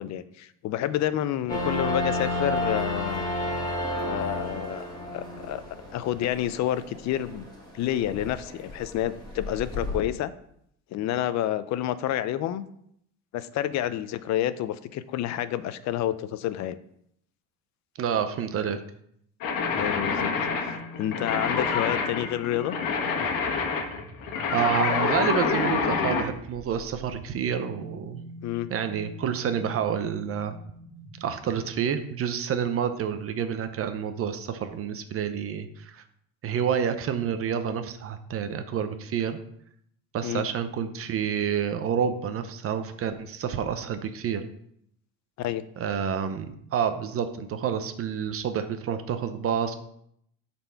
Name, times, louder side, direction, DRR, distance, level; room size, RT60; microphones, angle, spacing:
voice 1, 0.0-3.2 3.9-5.6 5.9-7.5 7.7-10.3 10.9-12.7 13.3-16.8 19.8-20.3 20.6-22.8 28.4-28.7 40.2-40.5 45.4-45.6, left 12 dB, 55° left, 15 dB, 0.6 m, -29 dB
sound 1, 1.5-10.0, left 1 dB, 10° left, 2.4 m, -32 dB
voice 2, 18.0-18.8 24.5-28.2 28.7-30.6 31.2-36.0 36.4-39.4 40.1-44.4 45.8-49.7, right 8 dB, 40° right, 9 dB, 0.7 m, -28 dB
sound 2, 19.4-26.3, left 5 dB, 70° left, 1.4 m, -27 dB
sound 3, 19.5-32.4, equal, 20° right, 1.1 m, -46 dB
7.8 x 4.3 x 5.7 m, 0.71 s
cardioid pair, 135°, 33 cm